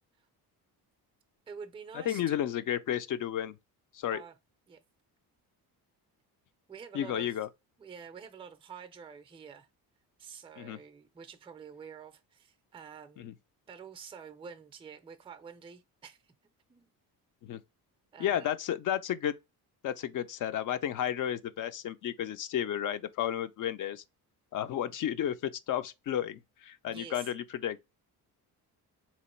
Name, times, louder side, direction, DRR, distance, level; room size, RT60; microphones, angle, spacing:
voice 1, 1.5-2.4 4.1-4.4 4.7-4.8 6.7-7.4 7.8-9.7 10.2-13.3 13.7-16.3 16.7-16.9 18.1-18.5 26.9-27.3, right 6 dB, 15° right, 0.5 m, -48 dB
voice 2, 2.1-3.5 3.9-4.2 6.9-7.5 10.6-10.8 13.2-13.3 17.4-17.6 18.2-19.3 19.8-24.0 24.5-27.8, left 10 dB, 50° left, 0.5 m, -32 dB
3.8 x 3.0 x 4.3 m
cardioid pair, 120°, 39 cm